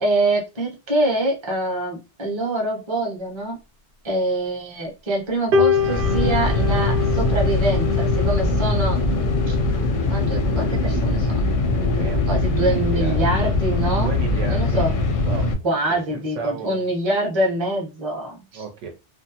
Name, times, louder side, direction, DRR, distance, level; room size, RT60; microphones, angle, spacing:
voice 1, 0.0-3.6 4.0-9.0 9.5-9.6 10.1-11.4 12.3-14.1 14.5-14.9 15.6-18.6, right 1 dB, 25° right, 0.7 m, -24 dB
sound 1, 5.5-13.5 14.1-14.4, left 5 dB, 65° right, 0.7 m, -27 dB
sound 2, 5.7-15.5, left 2 dB, 60° left, 0.6 m, -21 dB
voice 2, 12.5-13.3 14.0-14.9 15.2-15.5 15.9-16.8 18.5-18.9, right 5 dB, 80° right, 1.0 m, -34 dB
2.5 x 2.1 x 2.8 m
omnidirectional pair, 1.2 m